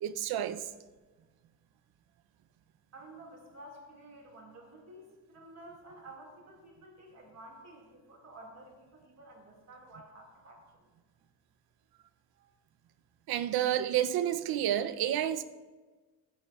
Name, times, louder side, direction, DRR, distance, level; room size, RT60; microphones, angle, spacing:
voice 1, 0.0-0.7 13.3-15.4, right 11 dB, 75° right, 0.7 m, -30 dB
voice 2, 2.9-10.9 12.3-12.5, right 1 dB, 45° right, 2.2 m, -52 dB
16.5 x 9.5 x 2.4 m
cardioid pair, 125°, 38 cm